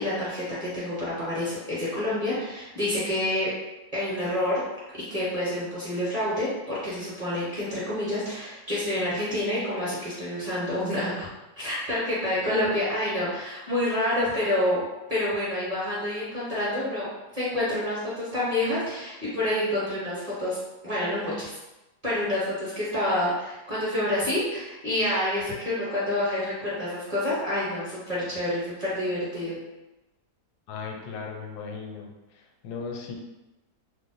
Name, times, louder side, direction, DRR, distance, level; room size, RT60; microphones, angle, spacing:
voice 1, 0.0-3.5 3.9-4.6 4.9-11.3 11.6-14.8 15.1-17.1 17.3-21.5 22.0-29.6, left 1 dB, 30° right, -10 dB, 0.8 m, -28 dB
voice 2, 30.7-32.1 32.6-33.1, left 5 dB, 85° left, 1 dB, 1.1 m, -36 dB
2.7 x 2.1 x 3.8 m, 1.0 s
omnidirectional pair, 1.7 m